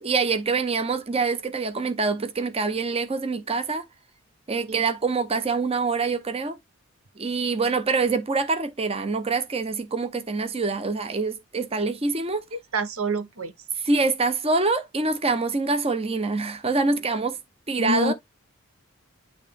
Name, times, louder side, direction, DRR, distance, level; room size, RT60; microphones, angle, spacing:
voice 1, 0.0-3.8 4.5-6.6 7.2-12.4 13.8-17.4 17.7-18.1, right 4 dB, 30° right, 0.7 m, -25 dB
voice 2, 12.5-13.5 17.8-18.1, right 1 dB, 80° right, 0.9 m, -27 dB
8.8 x 3.4 x 3.5 m
head